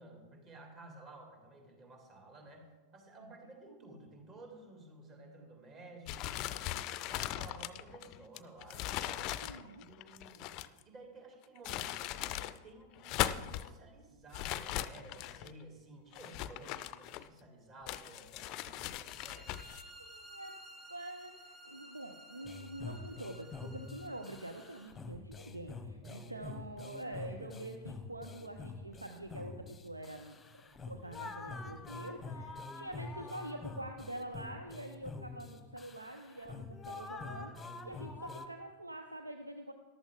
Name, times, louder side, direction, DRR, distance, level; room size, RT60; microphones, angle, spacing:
voice 1, 0.0-6.8 7.0-9.3 9.8-10.5 10.8-19.6 26.0-26.3, right 2 dB, 30° right, 2 dB, 2.9 m, -54 dB
voice 2, 3.2-3.5 9.4-9.9 19.6-20.5 20.9-30.4 30.8-39.7, right 1 dB, 85° right, 6 dB, 0.7 m, -46 dB
sound 1, 6.0-10.8 11.4-12.6 12.9-13.7 14.3-15.5 16.1-17.4 17.9-19.8, left 13 dB, 40° left, 0.5 m, -39 dB
sound 2, 19.0-24.9, right 1 dB, 10° right, 2.2 m, -55 dB
sound 3, 22.4-38.5, left 3 dB, 15° left, 0.9 m, -46 dB
14.0 x 12.0 x 3.8 m, 1.3 s
figure-of-eight pair, 90°, 0 cm